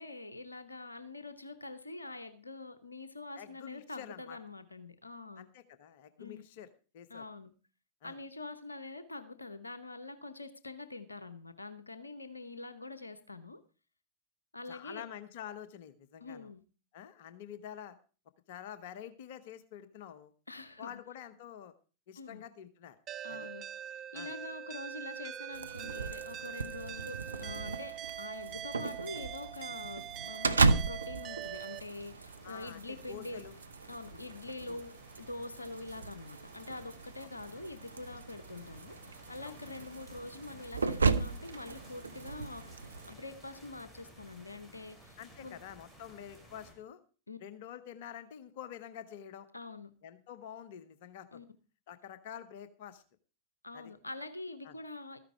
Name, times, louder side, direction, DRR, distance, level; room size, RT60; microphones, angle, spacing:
voice 1, 0.0-5.5 6.2-6.4 7.1-7.5 8.0-13.6 14.5-15.1 16.2-16.6 20.5-21.0 22.2-22.4 23.2-23.6 23.9-33.4 33.9-34.9 35.2-45.2 45.4-45.6 47.3-47.4 49.5-49.9 51.3-51.4 53.6-55.2, left 2 dB, 80° left, 13 dB, 0.8 m, -45 dB
voice 2, 3.4-4.4 5.4-6.7 6.9-7.3 8.0-8.2 14.7-16.5 16.9-18.0 18.5-20.3 20.8-21.7 22.1-23.0 23.3-23.5 24.1-24.3 32.4-32.8 33.1-33.5 34.1-34.2 34.7-34.8 39.4-39.6 45.2-47.0 47.4-49.5 50.0-51.4 51.9-53.0 53.7-53.9 54.6-54.7, left 9 dB, 50° left, 13 dB, 1.0 m, -47 dB
sound 1, 23.1-31.8, right 10 dB, 30° right, 0.5 m, -43 dB
sound 2, 25.5-43.1, right 4 dB, 75° right, 0.6 m, -36 dB
sound 3, 31.5-46.7, equal, ahead, 4.9 m, -57 dB
13.5 x 10.0 x 4.6 m, 0.36 s
figure-of-eight pair, 90°, 0 cm